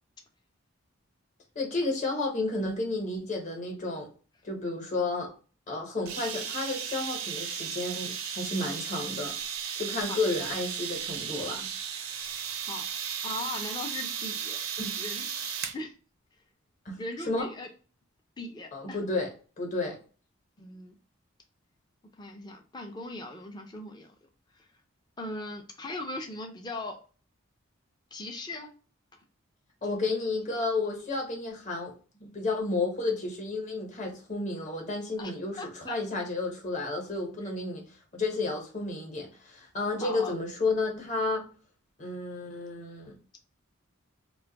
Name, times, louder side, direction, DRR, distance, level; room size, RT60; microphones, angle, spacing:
voice 1, 1.5-4.1 4.4-5.3 5.7-9.3 9.8-11.7 14.8-14.9 16.8-17.5 18.7-19.3 19.6-20.0 29.8-31.9 32.2-37.8 38.1-41.4 42.0-43.2, left 2 dB, 35° left, 0.8 m, -32 dB
sound 1, 6.1-15.8, right 8 dB, 90° right, 0.6 m, -35 dB
voice 2, 13.2-14.6 15.0-15.3 15.7-15.9 17.0-17.7 18.4-19.0 20.6-20.9 22.2-24.1 24.5-24.7 25.2-27.0 28.1-28.7 35.2-36.0 37.4-37.5 40.0-40.3, left 2 dB, 20° left, 0.4 m, -39 dB
2.5 x 2.3 x 3.8 m
head